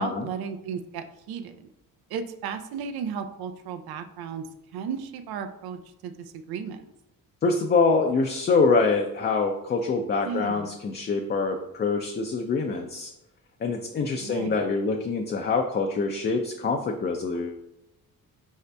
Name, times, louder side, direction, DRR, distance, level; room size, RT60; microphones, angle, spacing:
voice 1, 0.0-1.7 2.1-4.4 4.7-6.8 10.2-10.8 14.2-14.6, right 6 dB, 80° right, 9 dB, 0.5 m, -34 dB
voice 2, 7.4-13.1 13.6-17.6, left 4 dB, 30° left, 2 dB, 0.4 m, -25 dB
4.9 x 2.7 x 3.3 m, 0.84 s
cardioid pair, 110°, 37 cm